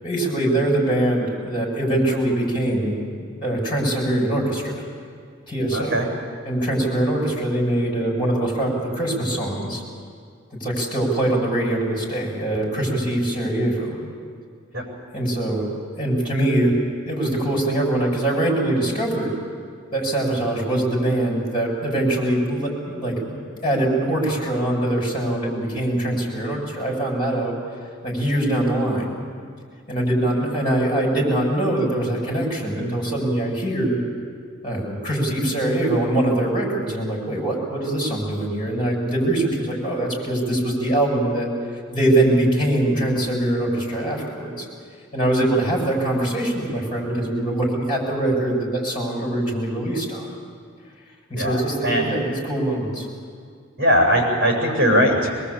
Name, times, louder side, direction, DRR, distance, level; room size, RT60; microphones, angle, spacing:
voice 1, 0.0-2.9 3.4-4.8 5.5-6.0 6.4-9.8 10.6-13.9 15.1-15.7 16.0-16.7 17.0-19.3 19.9-22.7 23.0-23.3 23.6-27.6 28.0-29.2 29.9-34.0 34.6-41.5 41.9-44.7 45.1-50.3 51.3-53.1, right 1 dB, 25° left, -2 dB, 7.5 m, -23 dB
voice 2, 5.7-6.0 14.7-14.8 51.3-52.1 53.8-55.3, equal, 50° right, 0 dB, 7.8 m, -20 dB
23.5 x 22.0 x 8.6 m, 2.1 s
head